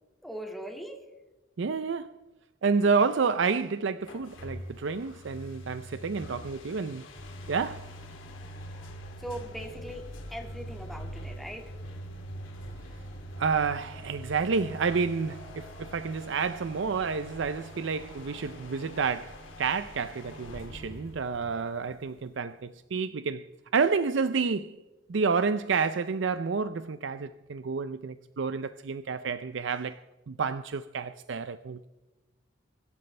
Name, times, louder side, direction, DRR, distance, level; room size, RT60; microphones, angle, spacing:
voice 1, 0.2-1.0 9.2-11.6, equal, ahead, 2.0 m, -40 dB
voice 2, 1.6-2.1 2.6-7.1 7.5-7.9 13.4-23.5 23.7-24.8 25.1-30.0 30.3-31.9, right 5 dB, 65° right, 0.5 m, -29 dB
sound 1, 4.0-22.5, equal, 85° left, 2.5 m, -44 dB
23.5 x 12.0 x 3.3 m
head